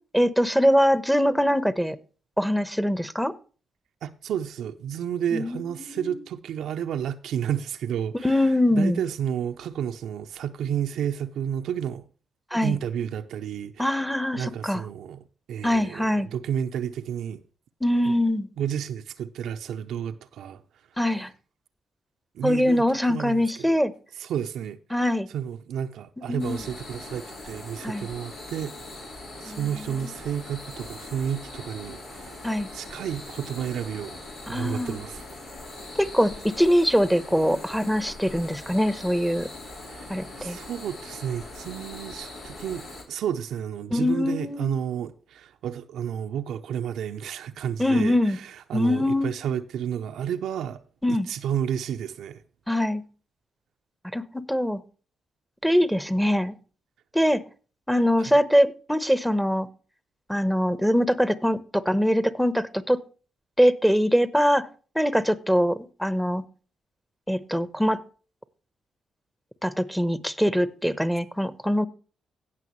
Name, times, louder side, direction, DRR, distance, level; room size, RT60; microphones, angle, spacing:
voice 1, 0.1-2.0 2.4-3.3 5.3-6.2 8.2-9.0 12.5-12.8 13.8-14.8 15.6-16.3 17.8-18.5 21.0-21.3 22.4-23.9 24.9-25.3 26.3-26.6 27.8-28.1 29.5-29.6 32.4-32.7 34.5-35.0 36.0-39.5 40.1-40.6 43.9-44.7 47.8-48.4 48.7-49.3 51.0-51.3 52.7-53.0 54.1-54.8 55.6-56.5 57.1-57.4 57.9-59.7 60.3-63.0 63.6-64.7 64.9-66.4 67.3-68.0 69.6-71.9, equal, ahead, 1.1 m, -23 dB
voice 2, 4.0-12.1 12.6-14.0 14.3-17.4 18.1-18.2 18.6-20.6 22.3-23.8 24.2-25.0 25.3-28.8 29.4-32.4 32.7-34.2 34.5-35.2 39.8-40.1 40.4-50.8 51.1-52.4 58.2-58.3, right 9 dB, 75° right, 0.6 m, -31 dB
sound 1, 26.4-43.0, left 2 dB, 75° left, 3.7 m, -41 dB
17.0 x 6.0 x 3.1 m
supercardioid pair, 50°, 0 cm